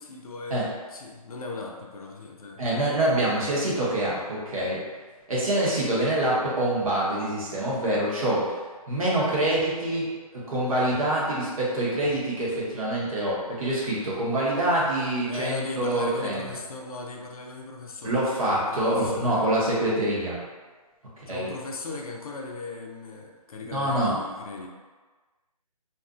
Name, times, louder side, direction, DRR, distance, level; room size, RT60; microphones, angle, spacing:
voice 1, 0.0-2.6 15.3-19.5 21.3-24.7, left 3 dB, 65° left, 1 dB, 0.5 m, -38 dB
voice 2, 2.6-4.8 5.3-8.6 8.9-16.5 18.0-20.4 21.2-21.5 23.7-24.2, right 1 dB, 60° right, -6 dB, 1.0 m, -25 dB
2.5 x 2.4 x 2.4 m, 1.4 s
hypercardioid pair, 165°, 20 cm